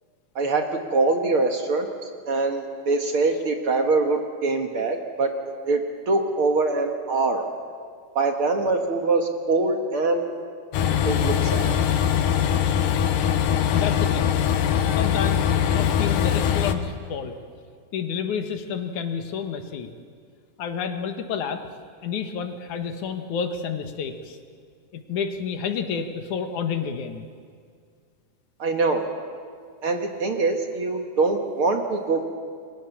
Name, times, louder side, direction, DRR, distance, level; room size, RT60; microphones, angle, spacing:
voice 1, 0.9-5.3 5.7-5.8 6.1-7.5 8.2-10.2 11.1-11.8 28.6-29.0 29.8-32.3, right 3 dB, 50° right, 4 dB, 2.1 m, -23 dB
Train, 10.7-16.8, left 9 dB, 90° left, 2.7 m, -22 dB
voice 2, 13.7-14.3 14.9-17.4 17.9-19.9 20.6-21.6 22.0-24.4 24.9-27.3, left 6 dB, 75° left, 6 dB, 2.9 m, -30 dB
29.5 x 23.0 x 7.2 m, 2.2 s
omnidirectional pair, 3.6 m